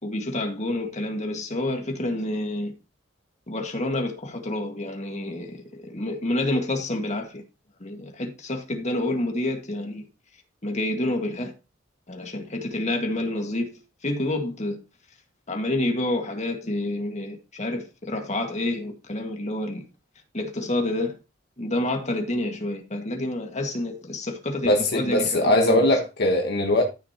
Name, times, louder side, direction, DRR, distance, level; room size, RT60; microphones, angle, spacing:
voice 1, 0.0-2.7 3.5-7.4 7.8-10.1 10.6-11.5 12.1-14.8 15.5-19.9 20.3-21.2 21.6-25.7, left 1 dB, 35° left, 1.9 m, -28 dB
voice 2, 24.6-26.8, left 1 dB, 55° left, 1.4 m, -21 dB
13.5 x 6.3 x 3.0 m
head